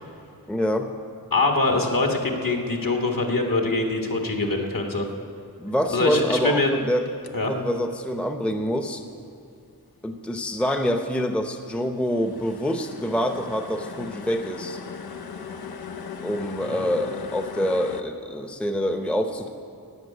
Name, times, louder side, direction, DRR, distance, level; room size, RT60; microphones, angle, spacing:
voice 1, 0.5-0.9 5.6-7.0 7.5-9.0 10.0-14.8 16.2-19.5, equal, 5° left, 6 dB, 0.7 m, -26 dB
voice 2, 1.3-5.1 5.9-6.7 7.3-7.5 16.6-16.8, left 2 dB, 65° left, 2 dB, 1.8 m, -23 dB
sound 1, 7.0-7.3 11.8-18.0, left 6 dB, 85° left, 0.7 m, -38 dB
16.0 x 5.8 x 9.4 m, 2.5 s
wide cardioid pair, 80°, 36 cm